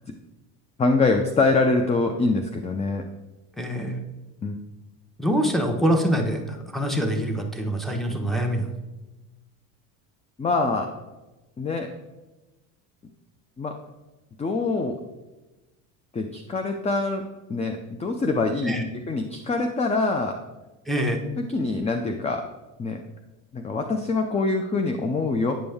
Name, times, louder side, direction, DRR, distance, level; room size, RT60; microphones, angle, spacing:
voice 1, 0.8-3.0 4.4-4.6 10.4-10.9 11.6-11.9 13.6-13.8 14.4-15.0 16.1-17.2 17.5-18.8 19.1-20.4 21.4-22.4 22.8-23.0 23.5-25.6, left 3 dB, 15° left, 5 dB, 0.4 m, -24 dB
voice 2, 3.6-4.0 5.2-8.6 18.6-18.8 20.9-21.2, equal, ahead, 3 dB, 1.1 m, -24 dB
8.9 x 5.2 x 3.5 m, 1.1 s
supercardioid pair, 90°, 44 cm